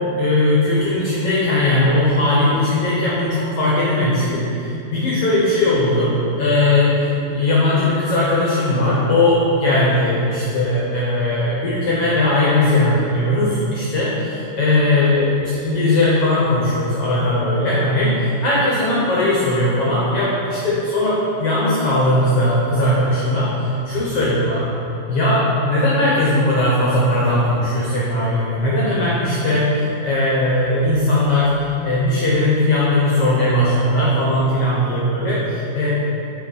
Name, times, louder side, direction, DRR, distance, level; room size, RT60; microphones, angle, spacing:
voice 1, 0.1-6.1 6.4-24.7 25.1-31.5 31.8-35.9, left 1 dB, 70° left, -7 dB, 1.4 m, -18 dB
6.6 x 4.8 x 4.1 m, 2.7 s
omnidirectional pair, 3.9 m